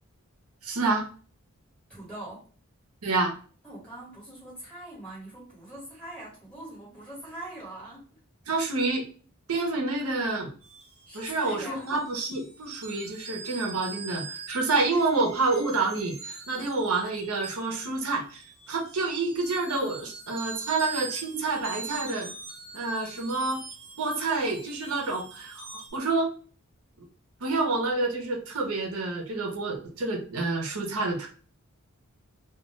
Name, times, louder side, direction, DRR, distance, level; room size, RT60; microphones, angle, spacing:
voice 1, 0.6-1.1 3.0-3.3 8.5-9.0 9.5-10.5 11.1-18.4 18.7-22.3 22.7-23.6 24.0-26.3 27.4-31.3, right 3 dB, 85° right, 2 dB, 0.7 m, -28 dB
voice 2, 1.9-2.4 3.6-8.0 11.1-11.9, right 1 dB, 5° left, -6 dB, 1.4 m, -42 dB
sound 1, 10.6-25.9, right 4 dB, 30° right, 0.9 m, -43 dB
2.2 x 2.2 x 3.0 m, 0.40 s
head